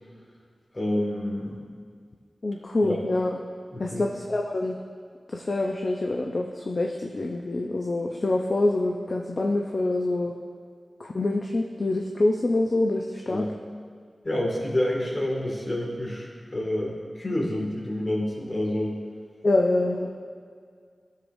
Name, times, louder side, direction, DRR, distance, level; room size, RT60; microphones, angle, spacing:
voice 1, 0.7-1.6 2.8-3.0 3.7-4.0 13.3-13.5 14.2-19.0, left 1 dB, 40° left, -3 dB, 2.1 m, -28 dB
voice 2, 2.4-3.4 3.8-4.8 5.3-10.3 11.0-13.4 19.4-20.1, left 2 dB, 60° left, 1 dB, 0.6 m, -26 dB
13.0 x 6.6 x 2.7 m, 2.1 s
wide cardioid pair, 55°, 0 cm